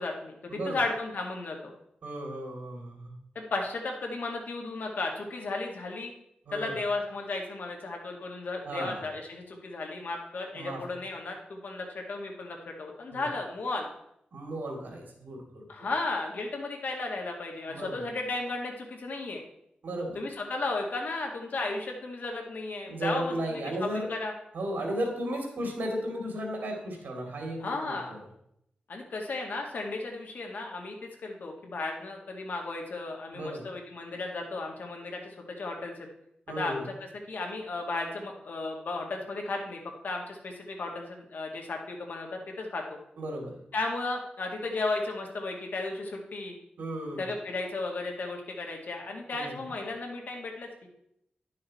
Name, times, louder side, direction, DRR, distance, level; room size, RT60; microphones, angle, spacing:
voice 1, 0.0-1.7 3.4-6.1 6.5-13.9 15.7-19.4 20.2-24.3 27.6-28.1 28.9-36.0 36.6-43.0 43.7-46.5 47.2-50.9, left 3 dB, 75° left, 1 dB, 1.9 m, -34 dB
voice 2, 2.0-3.1 6.5-6.7 8.6-9.0 10.5-10.8 13.1-13.3 14.3-15.9 17.7-18.1 19.8-20.2 22.9-24.1 24.5-28.2 33.3-33.7 36.5-36.9 43.2-43.6 46.8-47.3 49.3-49.6, right 1 dB, 90° right, 1 dB, 2.7 m, -35 dB
11.0 x 6.5 x 4.3 m, 0.76 s
wide cardioid pair, 115°, 3 cm